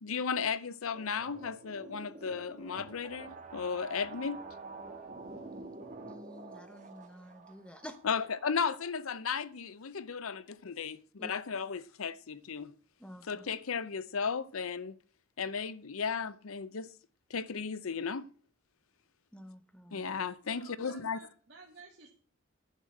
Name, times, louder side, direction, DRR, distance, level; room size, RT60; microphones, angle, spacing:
voice 1, 0.0-4.4 8.0-12.7 13.2-15.0 15.4-16.9 17.3-18.3 19.9-21.2, left 6 dB, 80° left, 0.7 m, -35 dB
sound 1, 0.9-9.2, right 3 dB, 35° right, 1.5 m, -48 dB
voice 2, 6.0-8.0 11.2-11.3 13.0-13.5 19.3-20.2, equal, 5° left, 1.0 m, -49 dB
voice 3, 20.4-22.1, right 3 dB, 55° right, 1.7 m, -54 dB
10.5 x 6.4 x 7.7 m
head